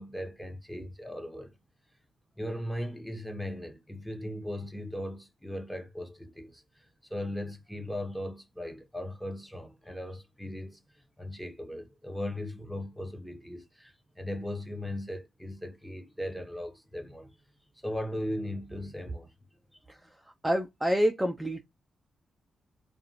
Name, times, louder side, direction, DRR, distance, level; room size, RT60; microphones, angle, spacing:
voice 1, 0.0-1.5 2.4-17.4 17.8-19.3 20.0-20.1, left 1 dB, 5° left, 0.9 m, -38 dB
voice 2, 20.4-21.6, equal, 15° right, 0.5 m, -27 dB
2.5 x 2.4 x 2.9 m
supercardioid pair, 50°, 0 cm